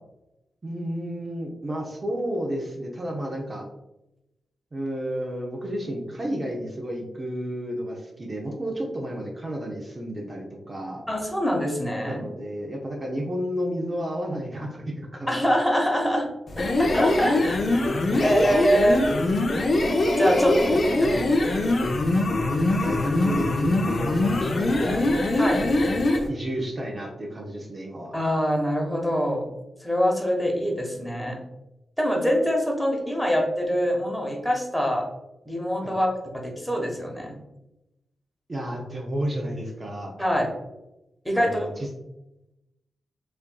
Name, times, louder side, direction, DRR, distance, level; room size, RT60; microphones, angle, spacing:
voice 1, 0.6-3.7 4.7-11.1 12.1-15.4 18.1-19.0 20.4-21.1 22.7-25.0 26.3-28.1 35.8-35.9 38.5-40.2 41.3-41.7, equal, 40° right, -1 dB, 0.7 m, -32 dB
voice 2, 11.1-12.2 15.3-16.3 16.6-19.1 20.2-20.5 21.0-21.2 25.4-25.6 28.1-29.4 29.8-31.4 32.0-35.1 35.5-36.1 36.3-37.3 40.2-40.5 41.2-41.7, equal, 5° left, 0 dB, 1.1 m, -24 dB
sound 1, 16.5-26.3, left 2 dB, 60° left, 0.6 m, -23 dB
4.3 x 2.6 x 2.2 m, 0.92 s
supercardioid pair, 45°, 0 cm